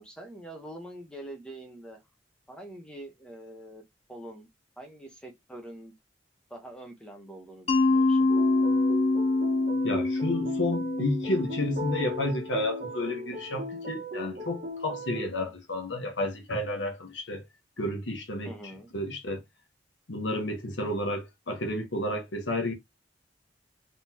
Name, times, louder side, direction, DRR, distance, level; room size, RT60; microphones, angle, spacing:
voice 1, 0.0-2.0 2.5-3.8 4.1-4.5 4.8-5.9 6.5-8.3 18.4-18.9, right 1 dB, 5° left, 1.0 m, -44 dB
Mallet percussion, 7.7-12.4, left 2 dB, 35° left, 0.8 m, -26 dB
sound 1, 8.3-15.3, equal, 55° right, 1.4 m, -37 dB
voice 2, 9.8-17.4 17.8-18.5 18.9-19.4 20.1-22.7, left 1 dB, 80° left, 1.3 m, -31 dB
3.9 x 3.7 x 2.9 m
head